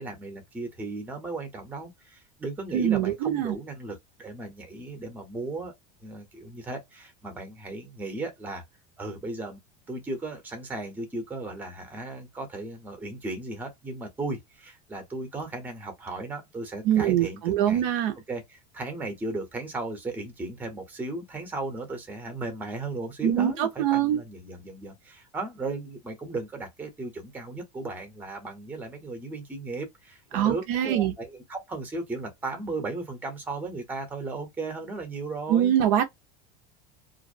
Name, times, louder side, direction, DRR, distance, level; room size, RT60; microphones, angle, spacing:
voice 1, 0.0-5.7 6.0-8.6 9.0-9.6 9.9-17.8 18.3-35.7, right 2 dB, 10° right, 0.7 m, -36 dB
voice 2, 2.7-3.6 16.8-18.1 23.2-24.2 30.3-31.1 35.5-36.0, right 11 dB, 50° right, 0.5 m, -23 dB
2.5 x 2.1 x 2.5 m
supercardioid pair, 170°, 21 cm